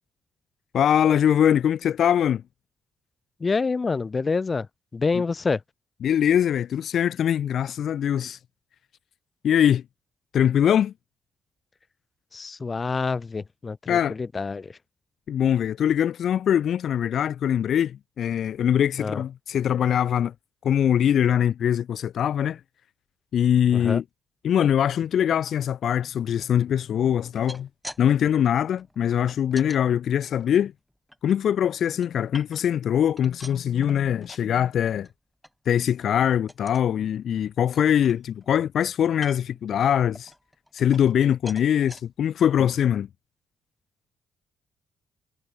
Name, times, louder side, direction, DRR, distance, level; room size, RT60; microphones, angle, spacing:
voice 1, 0.7-2.4 6.0-8.4 9.4-9.8 10.3-10.9 13.9-14.2 15.3-20.3 20.6-22.6 23.3-24.0 24.4-27.7 28.0-30.7 31.2-35.1 35.7-40.3 40.7-43.1, left 9 dB, 65° left, 0.8 m, -22 dB
voice 2, 3.4-4.7 4.9-5.6 12.3-14.8 19.0-19.2 23.7-24.0, left 4 dB, 30° left, 1.5 m, -27 dB
sound 1, 27.2-28.0 28.3-29.8 30.3-31.3 31.8-32.8 33.1-34.5 34.9-35.1 35.4-35.5 35.9-36.1 36.5-36.9 37.4-37.5 37.7-38.5 39.1-39.6 40.1-41.2 41.5-42.0 42.6-42.7 43.0-43.1, equal, ahead, 6.3 m, -45 dB
cardioid pair, 90°, 0 cm